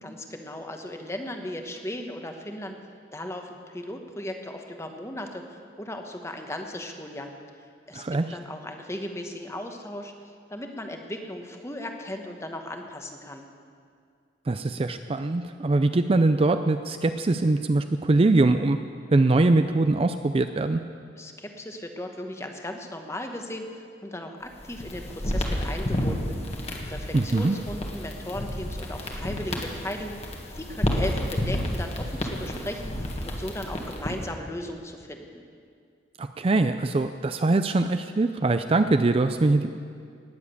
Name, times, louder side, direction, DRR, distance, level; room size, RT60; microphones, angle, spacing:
voice 1, 0.0-2.8 3.1-7.3 7.9-8.0 8.3-10.1 10.5-13.5 21.2-23.7 24.0-35.4, left 1 dB, 15° left, 4 dB, 1.1 m, -37 dB
voice 2, 7.9-8.4 14.5-18.8 19.1-20.8 27.1-27.6 36.2-39.7, right 2 dB, 30° right, 9 dB, 0.4 m, -22 dB
sound 1, 24.5-34.3, left 1 dB, 35° left, 1.6 m, -31 dB
19.0 x 7.4 x 8.3 m, 2.2 s
head